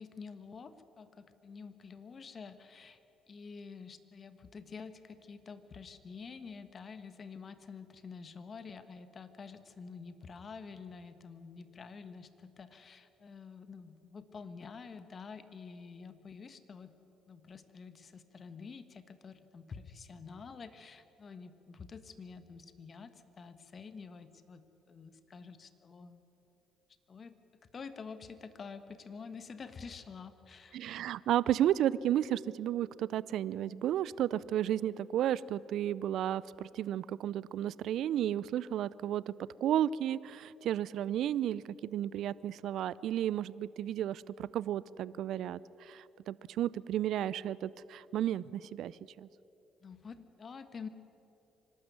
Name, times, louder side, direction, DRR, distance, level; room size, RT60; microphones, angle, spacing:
voice 1, 0.0-3.0 3.3-16.9 17.3-26.2 27.1-27.4 27.7-30.8 49.8-50.9, left 5 dB, 45° left, 12 dB, 1.5 m, -48 dB
voice 2, 30.7-39.3 39.6-49.3, right 11 dB, 65° right, 20 dB, 0.4 m, -33 dB
25.0 x 12.5 x 9.4 m, 3.0 s
hypercardioid pair, 55°, 0 cm